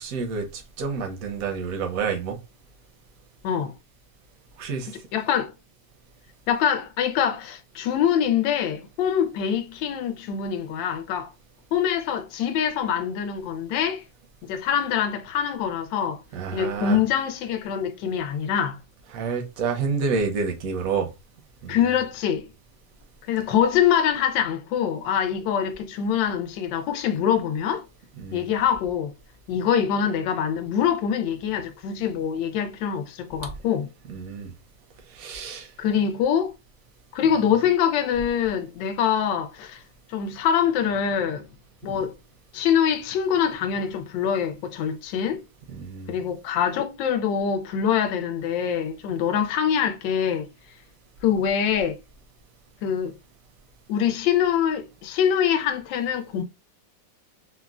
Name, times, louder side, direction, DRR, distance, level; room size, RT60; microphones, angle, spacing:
voice 1, 0.0-2.4 4.6-5.0 16.3-17.0 19.1-21.1 21.6-21.9 28.2-28.5 34.1-34.5 35.1-35.7 41.8-41.9 45.7-46.2, right 5 dB, 65° right, 0.9 m, -29 dB
voice 2, 3.4-3.7 5.1-5.5 6.5-11.3 11.7-14.0 14.4-16.2 16.5-18.8 21.7-22.5 23.3-27.8 28.3-29.1 29.5-33.9 35.8-36.5 37.1-39.8 40.1-41.5 41.8-42.1 42.5-45.4 46.1-50.5 51.2-52.0 52.8-53.2 53.9-56.4, left 8 dB, 85° left, 1.3 m, -24 dB
3.6 x 2.1 x 2.3 m
omnidirectional pair, 2.0 m